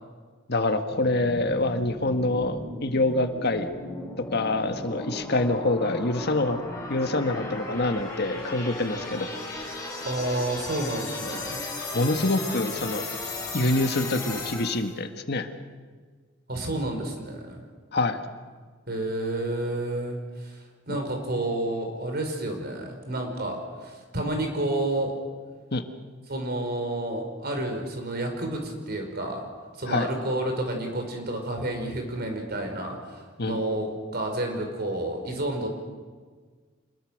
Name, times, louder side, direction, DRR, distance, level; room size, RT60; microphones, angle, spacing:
voice 1, 0.5-3.7 4.2-6.6 6.9-9.3 11.9-13.0 13.5-15.5 17.9-18.2 20.9-21.0 25.7-25.9 29.9-30.1 33.4-33.6, left 2 dB, 60° left, 7 dB, 1.7 m, -26 dB
sound 1, 0.9-14.9, left 2 dB, 20° left, 7.1 m, -36 dB
voice 2, 10.1-11.6 16.5-17.6 18.9-25.2 26.3-29.4 29.8-35.7, right 1 dB, 55° right, 4 dB, 5.2 m, -30 dB
27.0 x 21.5 x 6.6 m, 1.5 s
head